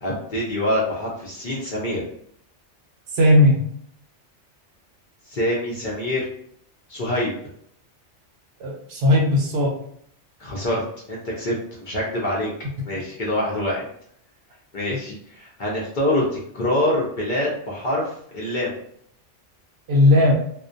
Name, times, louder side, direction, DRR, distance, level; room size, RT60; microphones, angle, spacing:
voice 1, 0.0-2.0 5.3-6.2 6.9-7.3 10.4-10.8 11.1-12.5 12.9-13.9 14.7-18.7, left 1 dB, 55° left, -4 dB, 0.6 m, -25 dB
voice 2, 3.1-3.7 8.6-9.8 19.9-20.3, left 1 dB, 65° right, -1 dB, 0.8 m, -17 dB
2.2 x 2.1 x 2.5 m, 0.67 s
omnidirectional pair, 1.2 m